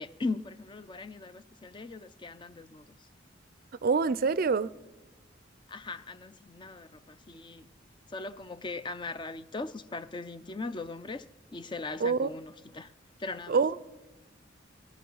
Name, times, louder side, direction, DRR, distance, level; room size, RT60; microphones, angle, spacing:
voice 1, 0.0-3.1 5.7-7.7 8.1-12.9 13.2-13.6, left 3 dB, 25° left, 0.5 m, -39 dB
voice 2, 3.8-4.7 12.0-12.3 13.5-13.7, right 5 dB, 50° right, 0.4 m, -25 dB
20.0 x 12.5 x 5.5 m
head